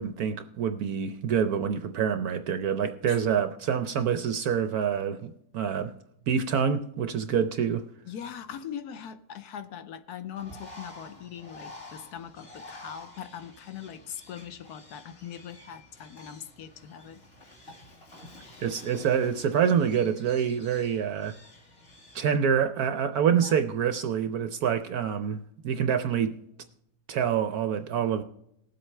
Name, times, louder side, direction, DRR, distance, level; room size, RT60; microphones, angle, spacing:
voice 1, 0.0-5.9 6.3-7.8 18.6-21.4 22.1-25.4 25.6-26.4 27.1-28.2, right 7 dB, 70° right, 0.9 m, -26 dB
voice 2, 8.1-17.2 23.3-23.6, left 8 dB, 65° left, 1.1 m, -41 dB
Bird, 10.4-22.4, left 2 dB, 30° left, 2.3 m, -50 dB
19.5 x 7.8 x 3.3 m
omnidirectional pair, 2.1 m